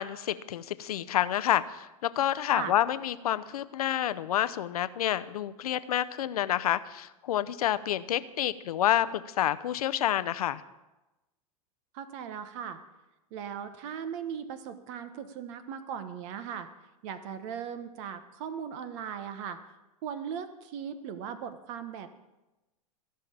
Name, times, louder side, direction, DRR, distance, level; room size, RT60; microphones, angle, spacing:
voice 1, 0.0-10.6, left 11 dB, 80° left, 15 dB, 0.7 m, -28 dB
voice 2, 11.9-12.8 13.3-16.7 17.0-19.6 20.0-22.1, right 8 dB, 55° right, 11 dB, 1.1 m, -38 dB
15.5 x 5.7 x 8.7 m, 1.0 s
hypercardioid pair, 110°, 19 cm